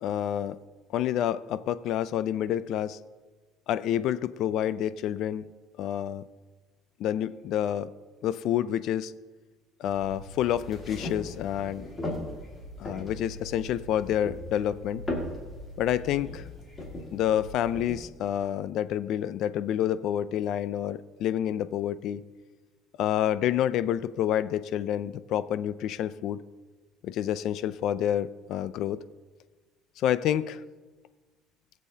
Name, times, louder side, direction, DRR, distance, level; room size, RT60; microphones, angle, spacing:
voice 1, 0.0-0.6 0.9-3.0 3.7-5.5 5.8-6.2 7.0-7.9 8.2-9.1 9.8-11.9 12.8-15.0 15.8-16.4 17.1-22.2 23.0-26.4 27.0-29.0 30.0-30.6, left 11 dB, 50° left, 16 dB, 0.4 m, -28 dB
sound 1, 9.8-17.9, left 1 dB, 20° left, 1.9 m, -38 dB
21.0 x 7.4 x 2.8 m, 1.3 s
cardioid pair, 175°, 0 cm